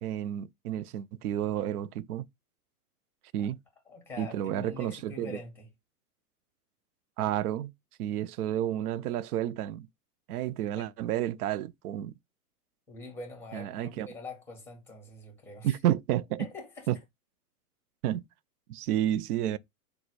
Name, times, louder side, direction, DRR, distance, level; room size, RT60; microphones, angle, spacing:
voice 1, 0.0-2.3 3.3-3.6 4.2-5.4 7.2-7.7 8.0-9.9 10.3-12.1 13.5-14.1 15.6-16.5 16.9-17.0 18.0-18.2 18.7-19.6, right 12 dB, 70° right, 0.5 m, -30 dB
voice 2, 3.9-5.7 10.7-10.8 12.9-15.7 16.4-16.9, left 3 dB, 5° left, 1.9 m, -44 dB
4.0 x 2.3 x 4.6 m
hypercardioid pair, 140°, 47 cm